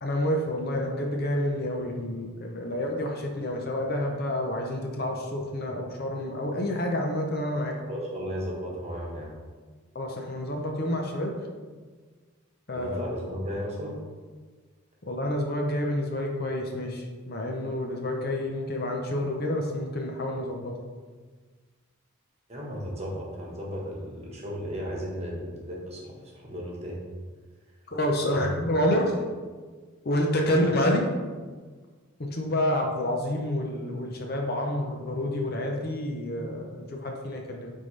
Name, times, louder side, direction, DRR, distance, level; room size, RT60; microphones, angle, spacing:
voice 1, 0.0-7.7 9.9-11.3 12.7-13.0 15.0-20.7 27.9-29.1 30.0-31.0 32.2-37.7, left 1 dB, 45° left, 1 dB, 0.7 m, -28 dB
voice 2, 7.9-9.3 12.7-14.0 22.5-27.1 28.3-28.5 29.0-29.2, equal, 30° right, -3 dB, 1.3 m, -35 dB
9.2 x 3.7 x 3.3 m, 1.5 s
head